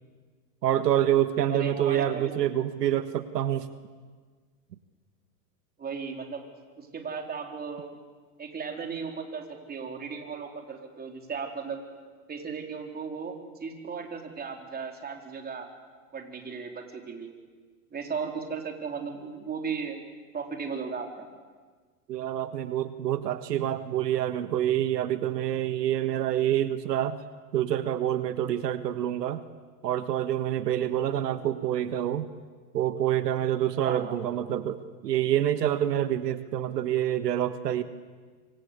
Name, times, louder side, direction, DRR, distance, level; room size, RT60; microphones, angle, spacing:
voice 1, 0.6-3.7 22.1-27.2 27.5-29.4 29.8-32.3 32.7-37.8, right 11 dB, 80° right, 10 dB, 1.6 m, -27 dB
voice 2, 1.5-2.3 5.8-6.4 6.8-8.0 8.4-11.8 12.3-13.3 13.6-15.7 16.1-17.3 17.9-20.0 20.3-21.3 33.8-34.2, right 5 dB, 20° right, 3 dB, 4.3 m, -36 dB
26.5 x 25.5 x 8.3 m, 1.5 s
hypercardioid pair, 120°, 48 cm